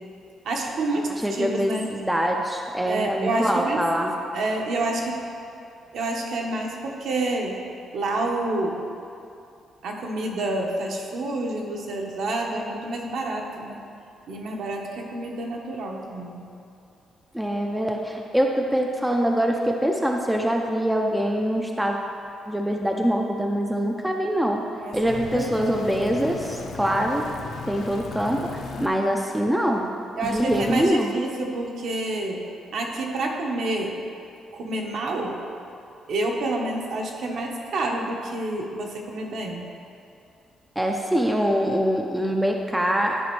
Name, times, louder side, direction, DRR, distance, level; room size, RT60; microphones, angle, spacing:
voice 1, 0.4-1.9 2.8-3.9 4.3-5.1 5.9-7.6 7.9-8.8 9.8-13.8 14.3-16.4 24.8-25.7 28.7-29.0 30.2-32.4 32.7-34.0 34.5-35.4 36.1-39.7, right 2 dB, 55° right, 0 dB, 1.0 m, -28 dB
voice 2, 1.2-4.1 17.3-22.0 22.5-24.6 24.9-27.3 27.7-29.9 30.2-31.1 40.8-43.2, equal, 5° right, 1 dB, 0.4 m, -24 dB
sound 1, 24.9-28.9 30.2-30.9, left 4 dB, 60° left, 0.7 m, -36 dB
12.0 x 5.0 x 3.1 m, 2.6 s
cardioid pair, 175°, 0 cm